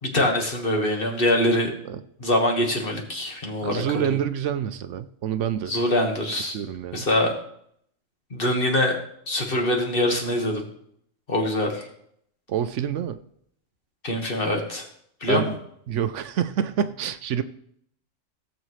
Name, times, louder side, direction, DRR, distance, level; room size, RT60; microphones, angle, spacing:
voice 1, 0.0-1.7 2.2-4.2 5.7-6.6 6.9-7.3 8.3-9.0 9.3-10.6 11.3-11.9 14.0-14.9 15.2-15.6, left 1 dB, 45° left, 2 dB, 1.8 m, -24 dB
voice 2, 3.6-5.8 6.5-7.1 12.5-13.2 15.3-15.5 15.9-17.4, right 9 dB, 70° right, 11 dB, 0.9 m, -27 dB
16.5 x 7.3 x 3.2 m, 0.68 s
omnidirectional pair, 1.3 m